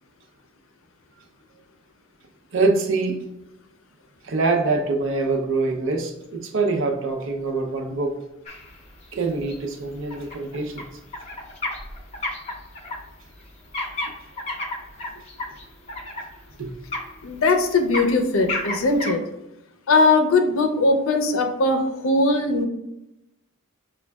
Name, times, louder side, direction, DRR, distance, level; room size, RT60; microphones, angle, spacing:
voice 1, 2.5-3.2 4.2-8.2 9.1-10.8 16.6-16.7, right 3 dB, 65° right, 3 dB, 0.6 m, -24 dB
sound 1, 8.5-19.1, left 2 dB, 30° left, 0.6 m, -33 dB
voice 2, 17.2-19.2 19.9-22.7, left 3 dB, 75° left, 5 dB, 0.5 m, -20 dB
5.9 x 2.2 x 2.2 m, 0.88 s
head